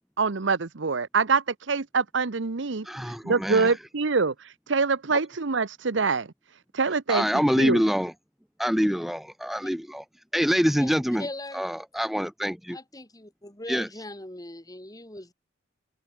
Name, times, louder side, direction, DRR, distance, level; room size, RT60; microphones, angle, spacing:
voice 1, 0.2-6.3 6.7-7.2 7.6-7.8, right 4 dB, 70° right, 0.9 m, -25 dB
voice 2, 2.8-3.7 7.1-8.1 8.6-10.0 10.3-11.3 11.5-12.8 13.7-13.9, equal, ahead, 0.6 m, -25 dB
voice 3, 11.2-11.7 12.7-15.3, left 1 dB, 20° left, 3.8 m, -40 dB
head